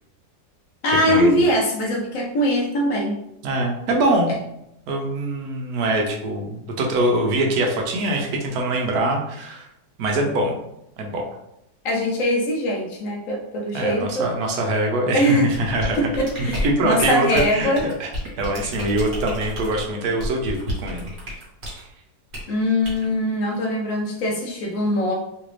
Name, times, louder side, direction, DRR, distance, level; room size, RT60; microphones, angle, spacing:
voice 1, 0.8-3.2 11.8-14.3 15.1-15.5 16.0-17.9 22.5-25.1, equal, 70° left, 0 dB, 0.8 m, -22 dB
voice 2, 3.4-4.3 4.9-9.7 10.0-10.6 11.0-11.2 13.7-16.0 16.4-17.7 18.0-18.1 18.4-21.1 21.7-21.9, right 1 dB, 75° right, 1 dB, 1.1 m, -23 dB
sound 1, 15.5-21.8 22.3-22.5 22.8-23.1, equal, 45° right, 1.2 m, -31 dB
3.2 x 2.5 x 3.1 m, 0.82 s
omnidirectional pair, 1.7 m